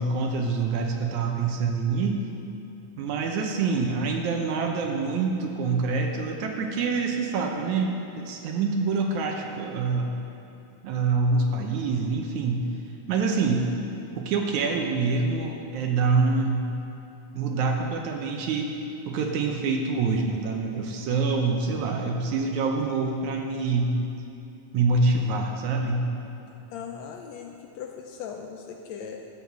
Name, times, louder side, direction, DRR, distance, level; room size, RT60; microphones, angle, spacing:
voice 1, 0.0-2.3 3.0-10.1 10.8-12.6 13.1-13.7 14.2-16.7 17.3-18.8 19.1-24.0 24.7-26.0, right 4 dB, 75° right, 2 dB, 2.1 m, -26 dB
voice 2, 26.7-29.2, left 7 dB, 80° left, 3 dB, 1.6 m, -39 dB
14.0 x 5.6 x 7.5 m, 2.8 s
omnidirectional pair, 3.7 m